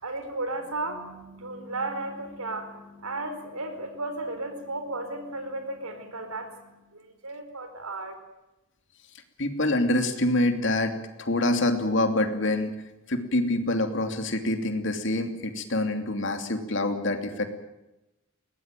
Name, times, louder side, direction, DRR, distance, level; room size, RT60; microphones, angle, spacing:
voice 1, 0.0-8.1, right 2 dB, 85° right, 8 dB, 4.7 m, -34 dB
voice 2, 9.4-12.8 13.1-17.4, left 1 dB, 55° left, 6 dB, 2.8 m, -26 dB
21.5 x 19.0 x 9.2 m, 0.99 s
head